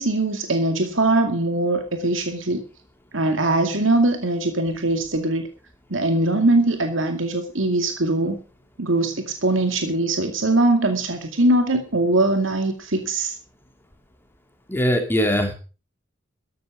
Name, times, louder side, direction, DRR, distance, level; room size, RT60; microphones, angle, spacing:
voice 1, 0.0-2.6 3.1-5.5 5.9-8.4 8.8-13.4, right 2 dB, 75° right, 6 dB, 2.3 m, -21 dB
voice 2, 14.7-15.5, equal, 10° left, 4 dB, 2.6 m, -21 dB
14.0 x 12.5 x 5.0 m, 0.35 s
head